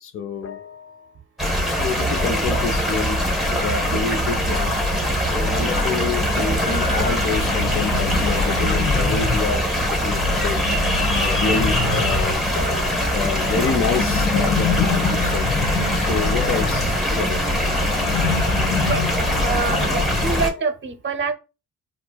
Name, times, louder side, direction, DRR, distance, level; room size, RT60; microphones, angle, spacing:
voice 1, 0.0-1.1 1.8-4.8 5.2-10.6 11.2-15.5 16.0-17.4 20.2-20.7, left 5 dB, 45° left, 0.4 m, -28 dB
sound 1, 1.4-20.5, equal, ahead, 0.9 m, -22 dB
sound 2, 3.5-4.5 4.9-5.0 5.2-8.8 9.3-17.8, left 1 dB, 25° left, 1.4 m, -38 dB
sound 3, 6.1-9.5 10.0-12.5 12.8-20.4, left 4 dB, 75° left, 1.1 m, -26 dB
voice 2, 19.4-21.3, right 5 dB, 40° right, 0.6 m, -26 dB
4.3 x 2.0 x 2.2 m
cardioid pair, 90°, 30 cm